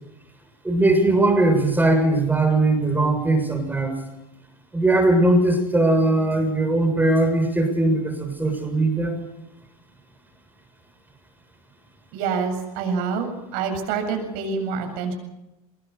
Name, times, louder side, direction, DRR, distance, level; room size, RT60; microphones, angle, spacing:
voice 1, 0.6-3.9 4.7-9.1, right 2 dB, 10° right, 4 dB, 7.3 m, -20 dB
voice 2, 12.1-15.1, right 5 dB, 60° right, 4 dB, 7.5 m, -26 dB
23.5 x 21.5 x 7.1 m, 0.95 s
hypercardioid pair, 85°, 18 cm